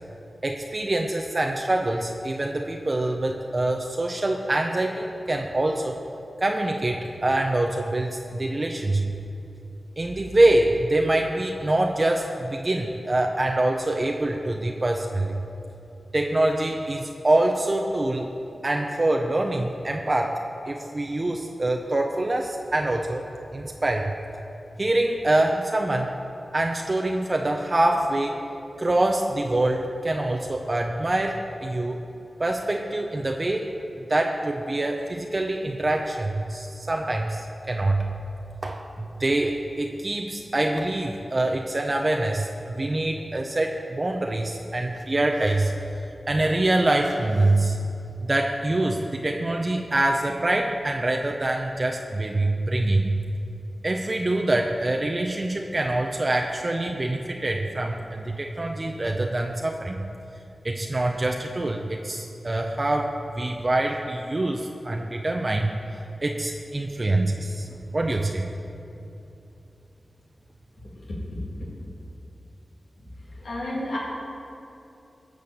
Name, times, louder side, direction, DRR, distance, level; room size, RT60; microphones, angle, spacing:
voice 1, 0.4-6.0 6.4-9.1 10.0-15.4 16.1-18.3 18.6-20.4 20.7-23.3 23.5-24.1 24.8-26.1 26.5-28.4 28.8-32.0 32.4-33.7 34.1-38.1 38.6-45.8 46.3-47.8 48.2-53.2 53.8-60.0 60.6-65.7 66.2-68.5, right 2 dB, 40° right, 2 dB, 0.7 m, -25 dB
voice 2, 73.4-74.0, left 1 dB, 85° left, -7 dB, 2.7 m, -30 dB
12.5 x 5.1 x 7.2 m, 2.8 s
cardioid pair, 40°, 0 cm